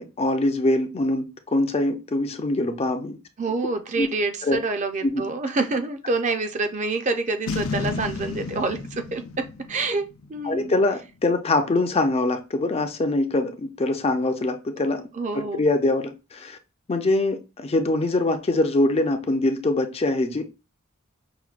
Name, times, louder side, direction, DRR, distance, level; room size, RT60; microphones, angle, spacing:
voice 1, 0.0-3.2 4.0-4.1 4.4-4.6 5.0-5.2 10.4-15.1 15.3-16.6 16.9-20.4, left 2 dB, 30° left, 0.4 m, -23 dB
voice 2, 3.4-10.0 10.3-10.7 15.1-15.6, right 3 dB, 35° right, 0.5 m, -27 dB
Boom, 7.5-10.8, left 4 dB, 75° left, 0.6 m, -32 dB
5.7 x 2.2 x 2.4 m
head